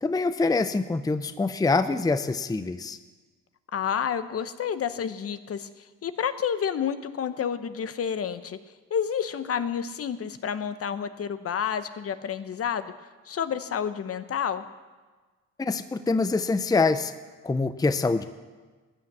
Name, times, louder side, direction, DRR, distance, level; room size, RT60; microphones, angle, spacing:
voice 1, 0.0-3.0 15.6-17.1 17.4-18.2, left 3 dB, 10° left, 11 dB, 0.6 m, -25 dB
voice 2, 3.7-5.7 6.0-8.6 8.9-12.9 13.3-14.7, left 8 dB, 50° left, 12 dB, 0.9 m, -29 dB
15.5 x 9.6 x 7.3 m, 1.3 s
cardioid pair, 90°, 30 cm